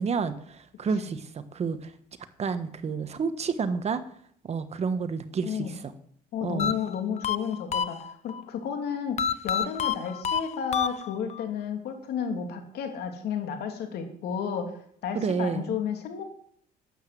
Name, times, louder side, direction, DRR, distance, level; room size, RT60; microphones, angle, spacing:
voice 1, 0.0-1.9 2.4-4.0 4.4-5.9 6.4-6.7 15.1-15.7, right 5 dB, 40° right, 11 dB, 1.3 m, -30 dB
voice 2, 5.4-5.8 6.3-14.7 15.0-16.2, left 7 dB, 75° left, 4 dB, 3.0 m, -32 dB
sound 1, 6.6-8.4 9.2-11.4, left 8 dB, 40° left, 0.7 m, -29 dB
12.5 x 9.0 x 7.7 m, 0.63 s
cardioid pair, 110°, 17 cm